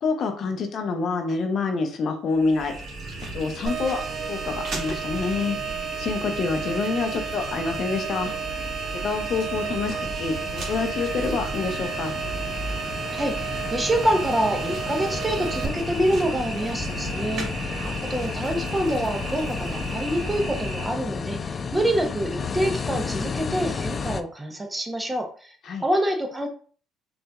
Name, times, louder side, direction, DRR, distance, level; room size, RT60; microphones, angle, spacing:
voice 1, 0.0-2.7 3.3-4.0 4.3-5.6 6.0-8.3 8.9-12.1 25.6-25.8, left 4 dB, 55° left, 4 dB, 0.7 m, -27 dB
sound 1, 2.3-20.9, right 2 dB, 60° right, 1.5 m, -34 dB
sound 2, 3.7-15.7, right 7 dB, 45° right, 0.5 m, -33 dB
sound 3, 8.0-24.2, left 5 dB, 40° left, 0.3 m, -33 dB
voice 2, 13.1-17.8 18.1-25.6 25.8-26.5, right 1 dB, 15° right, 3 dB, 0.8 m, -26 dB
4.7 x 2.5 x 2.3 m, 0.43 s
supercardioid pair, 65°, 0 cm